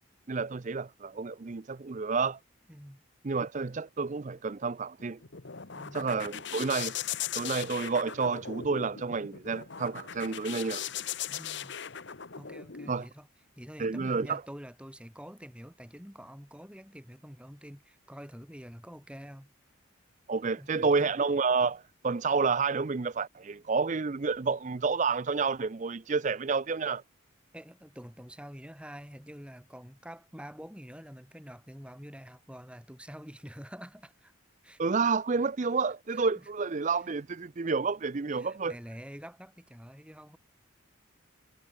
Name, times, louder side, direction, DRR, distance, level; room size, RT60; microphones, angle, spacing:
voice 1, 0.3-2.4 3.2-5.2 5.9-6.9 7.4-10.8 12.9-13.1 13.8-14.4 20.3-27.0 34.8-38.7, right 4 dB, 35° right, 0.5 m, -30 dB
voice 2, 2.7-3.0 5.7-6.1 11.3-11.8 12.4-13.3 13.6-19.5 20.6-21.1 27.5-34.3 34.6-34.8 36.3-36.5 38.3-40.4, equal, 5° right, 6.0 m, -47 dB
sound 1, 5.0-12.9, left 9 dB, 55° left, 1.2 m, -39 dB
head